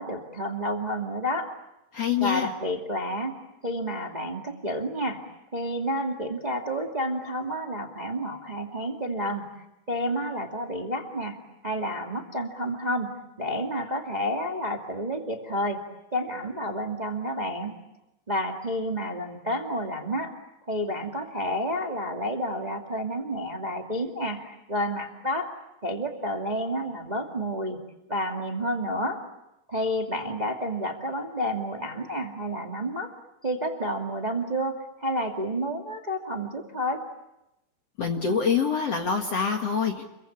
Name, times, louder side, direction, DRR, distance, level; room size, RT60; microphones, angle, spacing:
voice 1, 0.0-1.5 2.2-3.3 3.6-5.2 5.5-9.4 9.9-11.4 11.6-15.8 16.1-17.7 18.3-20.3 20.7-25.5 25.8-27.8 28.1-29.2 29.7-33.1 33.4-37.0, equal, 25° right, 2 dB, 0.9 m, -30 dB
voice 2, 1.9-2.5 38.0-40.0, left 6 dB, 50° left, 3 dB, 2.0 m, -25 dB
29.5 x 23.5 x 8.7 m, 0.92 s
omnidirectional pair, 5.1 m